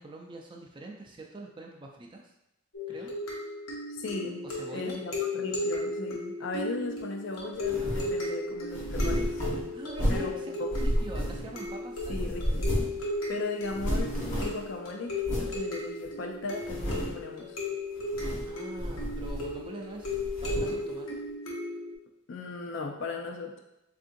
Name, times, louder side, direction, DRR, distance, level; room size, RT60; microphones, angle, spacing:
voice 1, 0.0-2.2 2.9-3.1 4.4-5.0 9.7-10.5 10.8-12.3 18.4-20.1 20.4-21.2, right 2 dB, 25° right, 1 dB, 0.3 m, -43 dB
sound 1, 2.7-21.9, left 2 dB, 85° left, 0.8 m, -35 dB
voice 2, 3.9-4.4 4.7-9.4 10.1-10.8 12.1-12.7 13.3-17.6 22.3-23.6, left 3 dB, 60° left, 2 dB, 0.4 m, -37 dB
sound 2, 7.6-8.2 8.7-10.4 10.7-11.7 12.0-13.0 13.3-13.4 13.6-14.7 15.2-15.6 16.1-16.2 16.6-17.2 18.0-18.5 18.8-19.7 20.0-20.8, equal, 35° left, 0.9 m, -31 dB
3.6 x 2.6 x 2.6 m, 0.90 s
head